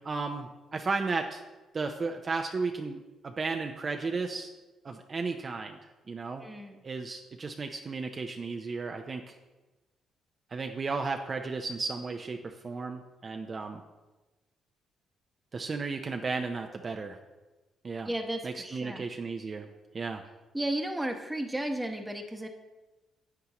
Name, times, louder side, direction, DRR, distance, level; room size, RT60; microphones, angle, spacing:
voice 1, 0.0-1.4 1.7-4.5 4.8-5.8 6.1-6.4 6.8-9.2 10.5-13.8 15.5-17.2 17.8-18.1 18.4-19.7 19.9-20.2, right 4 dB, 40° right, 4 dB, 0.5 m, -34 dB
voice 2, 6.4-6.8 18.0-19.1 20.5-22.5, right 1 dB, 5° right, 4 dB, 1.0 m, -34 dB
9.5 x 8.0 x 3.0 m, 1.2 s
cardioid pair, 90°, 0 cm